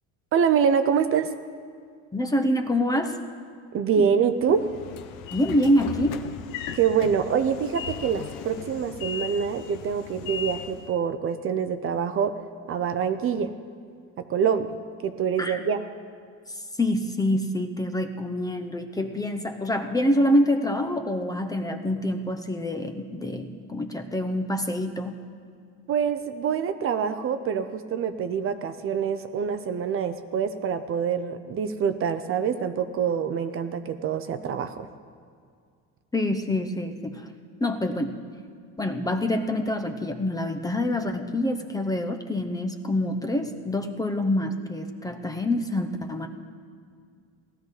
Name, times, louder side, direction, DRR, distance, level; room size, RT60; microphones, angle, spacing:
voice 1, 0.3-1.3 3.7-4.7 6.7-12.3 12.7-13.5 14.2-15.8 25.9-34.9, right 7 dB, 40° right, 10 dB, 0.6 m, -25 dB
voice 2, 2.1-3.2 4.0-4.1 5.3-6.2 15.4-15.6 16.5-25.2 36.1-37.2 37.6-38.2 38.8-46.3, left 1 dB, 10° left, 6 dB, 0.7 m, -26 dB
Train / Sliding door, 4.4-10.9, left 8 dB, 80° left, 0.9 m, -37 dB
17.5 x 13.0 x 4.1 m, 2.2 s
cardioid pair, 135°, 32 cm